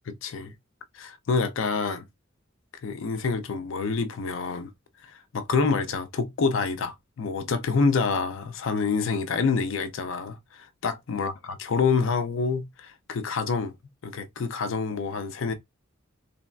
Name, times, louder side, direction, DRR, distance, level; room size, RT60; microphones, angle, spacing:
voice 1, 0.2-0.5 0.9-2.0 2.8-4.7 5.0-11.3 11.6-13.7 14.0-15.5, left 4 dB, 65° left, 0.5 m, -27 dB
3.2 x 2.2 x 2.3 m
head